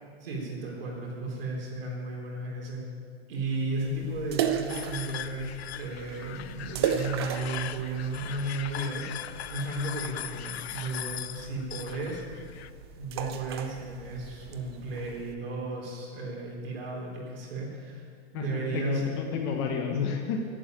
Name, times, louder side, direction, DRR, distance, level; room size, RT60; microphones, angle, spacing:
voice 1, 0.2-2.8 3.3-12.6 13.0-19.0, right 2 dB, 60° right, -3 dB, 3.8 m, -34 dB
sound 1, 3.8-15.3, right 8 dB, 25° right, 0.5 m, -36 dB
sound 2, 4.7-12.7, left 12 dB, 70° left, 0.6 m, -40 dB
voice 2, 18.3-20.5, left 5 dB, 25° left, 3 dB, 1.0 m, -30 dB
11.5 x 10.0 x 9.1 m, 2.2 s
hypercardioid pair, 170°, 33 cm